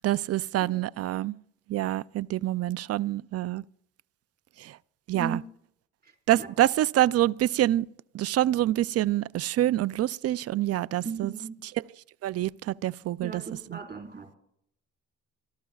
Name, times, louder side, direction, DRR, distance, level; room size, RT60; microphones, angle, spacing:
voice 1, 0.0-1.3 1.7-3.6 4.6-4.7 5.1-5.4 6.3-7.9 8.1-11.3 12.2-13.4 13.7-13.8, right 14 dB, 55° right, 0.4 m, -26 dB
voice 2, 6.0-6.5 11.0-11.5 13.2-14.4, right 5 dB, 30° right, 4.6 m, -37 dB
27.5 x 13.5 x 2.4 m
cardioid pair, 90°, 30 cm